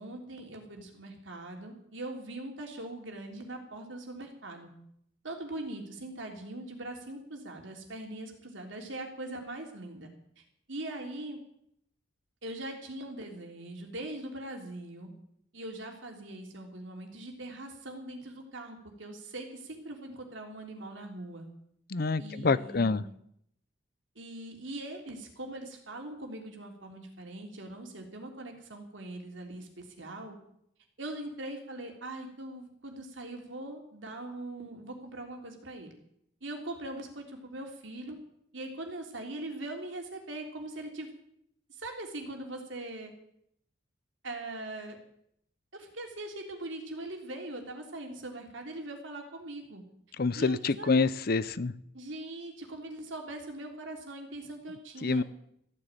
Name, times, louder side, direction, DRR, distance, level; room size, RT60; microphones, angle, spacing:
voice 1, 0.0-4.7 5.2-10.1 10.4-10.5 10.7-11.4 12.4-15.1 15.5-21.5 22.2-23.0 24.1-30.3 31.0-35.9 36.4-38.2 38.5-41.1 41.7-43.1 44.2-45.0 45.7-49.8 50.3-51.0 51.9-55.2, right 1 dB, 85° right, 3 dB, 3.4 m, -41 dB
voice 2, 21.9-23.0 50.2-51.7 55.0-55.2, left 4 dB, 50° left, 17 dB, 0.6 m, -27 dB
15.0 x 9.8 x 9.0 m, 0.73 s
head